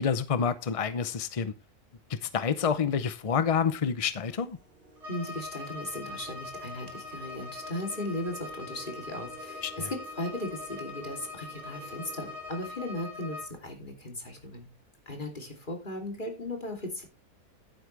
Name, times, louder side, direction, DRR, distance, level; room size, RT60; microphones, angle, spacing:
voice 1, 0.0-1.5 2.1-4.6 9.6-9.9, left 6 dB, 50° left, 0.4 m, -28 dB
sound 1, 3.9-13.5, right 2 dB, ahead, 5.5 m, -53 dB
Bowed string instrument, 5.0-13.6, left 3 dB, 45° right, 2.7 m, -42 dB
voice 2, 5.1-14.7 15.1-17.0, left 1 dB, 30° left, 3.1 m, -37 dB
11.5 x 9.8 x 3.3 m
omnidirectional pair, 1.6 m